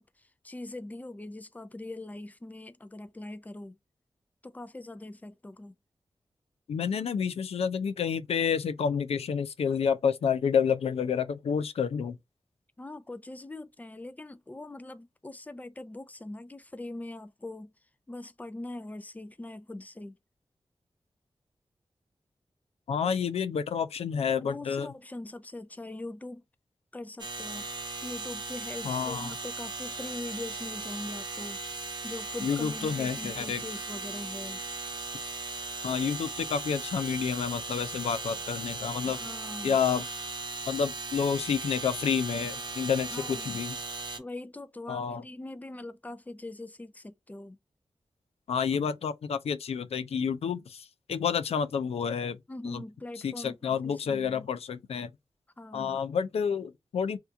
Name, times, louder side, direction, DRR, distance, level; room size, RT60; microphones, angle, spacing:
voice 1, 0.0-3.8 4.4-5.7 12.8-17.7 18.1-20.2 24.4-26.4 26.9-27.7 28.0-34.6 39.0-39.8 43.1-43.6 44.2-47.6 52.5-54.5 55.6-56.0, left 2 dB, 15° left, 0.5 m, -42 dB
voice 2, 6.7-12.2 22.9-24.9 28.8-29.4 32.4-33.6 35.8-39.2 39.6-40.0 40.7-43.8 44.9-45.2 48.5-52.4 52.6-52.8 53.2-55.1 55.7-57.2, left 7 dB, 90° left, 0.4 m, -29 dB
sound 1, 27.2-44.2, right 3 dB, 45° right, 0.9 m, -38 dB
2.9 x 2.3 x 3.3 m
cardioid pair, 65°, 10 cm